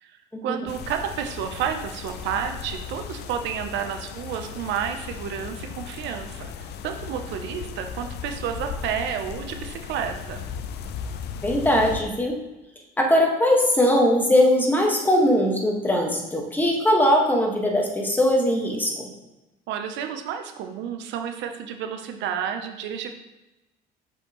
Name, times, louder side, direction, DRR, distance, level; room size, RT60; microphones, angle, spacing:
voice 1, 0.0-10.5 19.7-23.1, right 8 dB, 75° right, 5 dB, 0.6 m, -31 dB
sound 1, 0.7-12.0, left 7 dB, 65° left, 0.5 m, -36 dB
voice 2, 11.4-12.4 13.0-19.1, left 1 dB, 10° left, 0 dB, 1.4 m, -20 dB
6.5 x 5.3 x 3.0 m, 0.99 s
cardioid pair, 105°, 19 cm